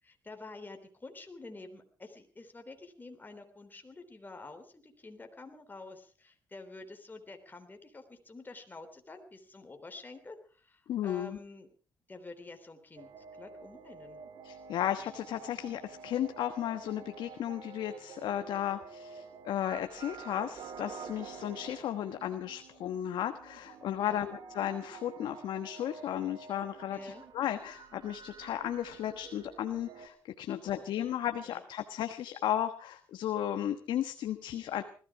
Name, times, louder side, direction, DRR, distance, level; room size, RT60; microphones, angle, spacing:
voice 1, 0.0-11.7 12.1-13.1 13.4-14.2 24.0-24.2 26.9-27.2 30.6-30.8 31.5-31.6, left 3 dB, 25° left, 6 dB, 3.5 m, -48 dB
voice 2, 10.9-11.4 14.4-34.8, left 11 dB, 80° left, 8 dB, 1.3 m, -34 dB
sound 1, 13.0-30.1, right 6 dB, 70° right, 2.2 m, -49 dB
20.5 x 14.5 x 4.9 m, 0.40 s
cardioid pair, 75°, 8 cm